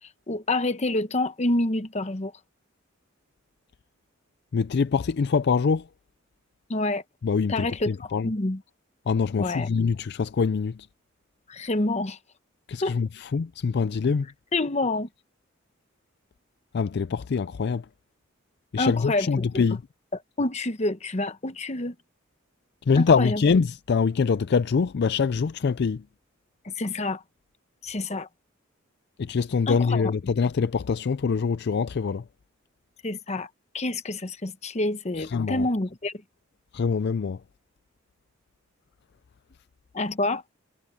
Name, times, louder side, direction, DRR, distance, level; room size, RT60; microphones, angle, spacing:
voice 1, 0.0-2.4 6.7-7.0 7.5-8.6 9.4-9.7 11.5-12.2 12.8-13.0 14.5-15.1 18.8-19.7 20.1-22.0 22.9-23.4 26.6-27.2 27.8-28.3 29.7-30.1 33.0-36.2 39.9-40.4, left 2 dB, 35° left, 1.0 m, -28 dB
voice 2, 4.5-5.9 7.2-8.3 9.1-10.9 12.7-14.3 16.7-17.8 18.7-19.8 22.9-26.0 29.2-32.2 35.3-35.6 36.7-37.4, left 5 dB, 55° left, 0.4 m, -24 dB
head